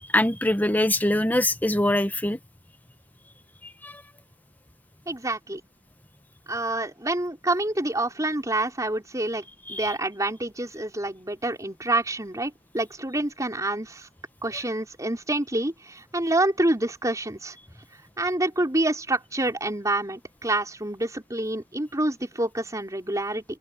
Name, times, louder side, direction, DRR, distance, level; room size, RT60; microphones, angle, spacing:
voice 1, 0.1-2.4 3.8-4.0 9.7-9.9, left 1 dB, 10° left, 1.1 m, -23 dB
voice 2, 5.1-5.6 6.5-9.4 9.7-14.1 14.4-17.6 18.2-23.4, right 2 dB, 20° right, 4.9 m, -27 dB
open air
head